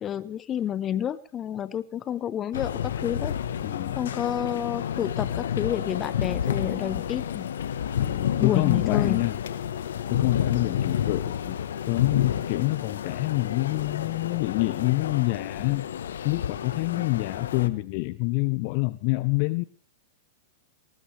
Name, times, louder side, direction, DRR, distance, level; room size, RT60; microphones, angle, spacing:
voice 1, 0.0-3.4 3.9-7.5 8.4-9.2 16.9-17.0, left 10 dB, 30° left, 16 dB, 1.0 m, -30 dB
sound 1, 2.5-17.7, left 9 dB, 80° left, 1.2 m, -30 dB
voice 2, 3.6-4.0 8.0-9.4 10.1-11.6 11.9-15.9 16.2-19.6, left 23 dB, 50° left, 16 dB, 0.6 m, -27 dB
20.0 x 18.0 x 3.4 m, 0.41 s
hypercardioid pair, 115°, 0 cm